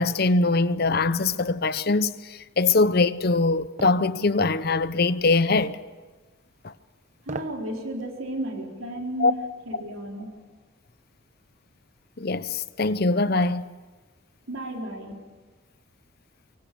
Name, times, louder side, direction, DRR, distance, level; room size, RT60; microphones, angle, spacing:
voice 1, 0.0-5.8 6.6-6.7 9.2-9.3 12.2-13.7, left 3 dB, 50° left, 0.7 m, -22 dB
sound 1, 3.8-4.0 5.6-5.8 7.2-7.6 8.0-8.1, right 2 dB, 35° right, 1.1 m, -36 dB
voice 2, 7.2-10.3 14.5-15.1, right 1 dB, 80° right, 4.0 m, -33 dB
24.0 x 23.5 x 6.9 m
head